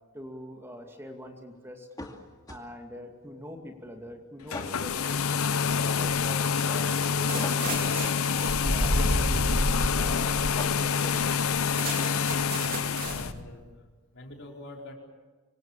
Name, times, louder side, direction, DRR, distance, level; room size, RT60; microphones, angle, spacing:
voice 1, 0.1-1.9 2.5-7.4 7.7-8.1 8.7-11.3, equal, 10° right, 3 dB, 2.4 m, -44 dB
sound 1, 1.9-2.7 4.5-4.8 7.4-7.7 10.4-11.1, left 2 dB, 20° left, 2.3 m, -40 dB
sound 2, 4.4-13.3, left 6 dB, 80° left, 0.8 m, -27 dB
sound 3, 4.7-5.2 5.7-13.4, equal, 45° right, 3.9 m, -31 dB
voice 2, 11.9-13.7 14.1-14.9, left 2 dB, 60° left, 0 dB, 4.8 m, -45 dB
25.5 x 25.0 x 7.4 m, 1.3 s
head